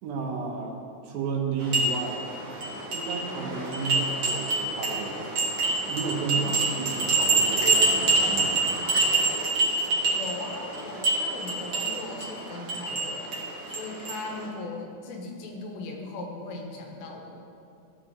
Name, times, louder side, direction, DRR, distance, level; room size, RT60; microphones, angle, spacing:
voice 1, 0.0-2.3 2.9-5.3 5.9-8.7, right 5 dB, 75° right, 1 dB, 3.0 m, -32 dB
sound 1, 1.6-14.5, right 2 dB, 55° right, 1.7 m, -27 dB
voice 2, 10.0-13.3 13.7-17.4, left 2 dB, 80° left, 1 dB, 3.2 m, -38 dB
17.0 x 6.5 x 3.0 m, 2.5 s
omnidirectional pair, 5.0 m